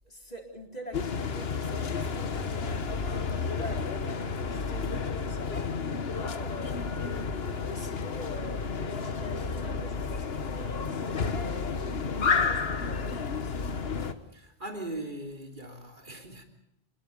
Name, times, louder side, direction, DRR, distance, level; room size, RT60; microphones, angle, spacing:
voice 1, 0.0-3.1 3.4-5.7 5.9-7.1 7.6-8.6 8.8-12.0 12.3-13.6, left 1 dB, 40° left, 4.4 m, -44 dB
sound 1, 0.9-14.1, left 5 dB, 65° left, 1.5 m, -31 dB
voice 2, 14.3-16.4, right 1 dB, 50° right, 3.4 m, -39 dB
26.5 x 21.5 x 5.3 m
omnidirectional pair, 1.1 m